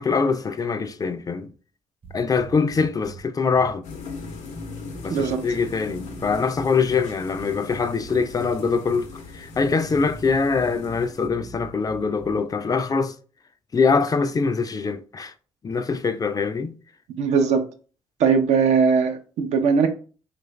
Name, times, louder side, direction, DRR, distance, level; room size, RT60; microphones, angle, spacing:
voice 1, 0.0-1.5 2.1-3.9 5.0-9.1 9.3-13.1 13.7-15.3 15.6-16.7, left 5 dB, 30° left, 0.4 m, -23 dB
sound 1, 2.0-3.2 3.5-3.7 4.2-7.0 7.4-8.5 8.9-9.0 9.5-12.4, right 2 dB, 50° right, 0.8 m, -41 dB
sound 2, 3.8-11.3, left 4 dB, 85° left, 0.6 m, -40 dB
voice 2, 5.1-5.4 17.2-17.6 18.2-19.9, right 5 dB, 80° right, 0.5 m, -20 dB
3.0 x 2.4 x 3.1 m
supercardioid pair, 65°, 12 cm